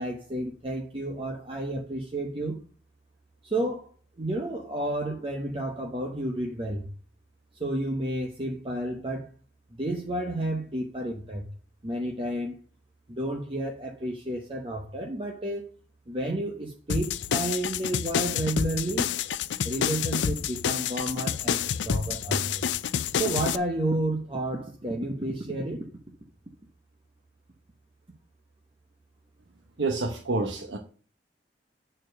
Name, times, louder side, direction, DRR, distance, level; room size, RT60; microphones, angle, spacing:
voice 1, 0.0-2.6 3.4-3.9 4.2-6.9 7.5-9.3 9.7-11.5 11.8-12.6 13.1-15.7 16.1-19.1 19.6-22.7 23.1-25.9, right 1 dB, 30° right, 1.0 m, -31 dB
sound 1, 16.9-23.6, left 8 dB, 90° left, 0.4 m, -28 dB
voice 2, 29.8-30.8, right 3 dB, 90° right, 1.0 m, -28 dB
8.6 x 4.4 x 6.5 m
head